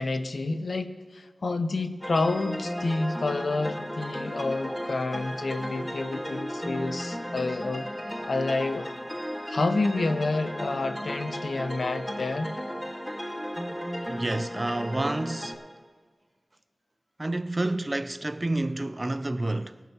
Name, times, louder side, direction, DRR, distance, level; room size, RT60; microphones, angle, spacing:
voice 1, 0.0-9.0 9.5-12.5, left 3 dB, 75° left, 0.7 m, -29 dB
sound 1, 2.0-15.5, equal, 10° left, 1.6 m, -35 dB
voice 2, 14.1-15.6 17.2-19.8, right 2 dB, 30° right, 0.4 m, -29 dB
22.5 x 11.5 x 2.9 m
wide cardioid pair, 75°, 0 cm